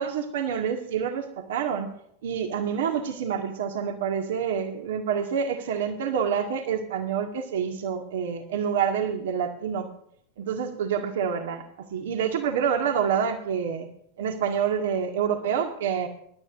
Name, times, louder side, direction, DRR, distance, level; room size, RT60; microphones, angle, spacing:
voice 1, 0.0-1.9 2.2-9.9 10.4-11.6 11.9-13.9 14.2-16.1, right 7 dB, 55° right, 5 dB, 1.9 m, -27 dB
24.5 x 12.5 x 2.6 m, 0.69 s
figure-of-eight pair, 90°, 0 cm